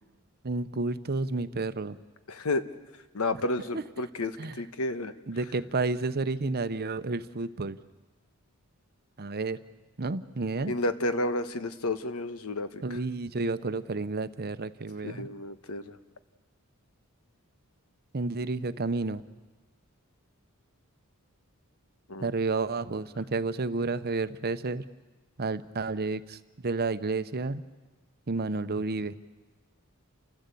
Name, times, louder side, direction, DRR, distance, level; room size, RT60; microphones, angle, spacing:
voice 1, 0.4-2.0 3.7-3.8 4.4-4.6 5.3-7.8 9.2-9.6 10.0-10.7 12.8-15.3 18.1-19.2 22.2-24.8 25.4-27.6 28.3-29.1, right 3 dB, 45° right, 12 dB, 0.8 m, -31 dB
voice 2, 2.3-2.6 3.1-5.1 10.6-12.8 15.0-16.0 22.1-22.3, left 2 dB, 75° left, 11 dB, 1.2 m, -31 dB
29.5 x 14.0 x 8.4 m, 1.2 s
head